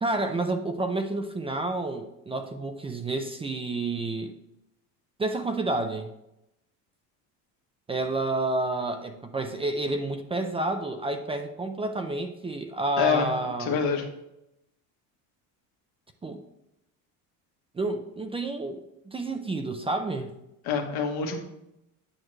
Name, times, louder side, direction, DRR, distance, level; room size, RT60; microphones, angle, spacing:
voice 1, 0.0-4.3 5.2-6.1 7.9-13.8 16.2-16.4 17.7-20.3, right 2 dB, 15° right, 6 dB, 0.5 m, -30 dB
voice 2, 13.7-14.0 20.6-21.4, left 6 dB, 75° left, 3 dB, 1.4 m, -26 dB
8.7 x 6.0 x 3.2 m, 0.86 s
cardioid pair, 125°, 38 cm